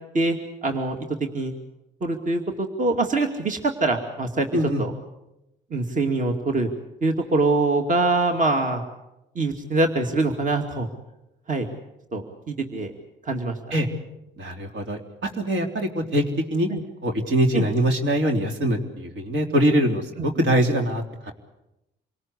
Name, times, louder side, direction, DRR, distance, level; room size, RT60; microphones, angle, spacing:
voice 1, 0.1-1.0 1.3-1.5 2.0-4.5 4.8-4.9 5.7-6.7 7.0-8.8 9.4-10.9 11.5-11.7 12.1-12.9 13.3-13.5 16.7-16.8 17.5-17.7, right 2 dB, 40° right, 4 dB, 2.5 m, -24 dB
voice 2, 4.5-4.8 13.7-13.9 14.4-16.2 16.5-16.7 17.0-21.3, right 1 dB, 70° right, 3 dB, 3.5 m, -23 dB
27.0 x 18.5 x 8.3 m, 0.94 s
cardioid pair, 90°, 20 cm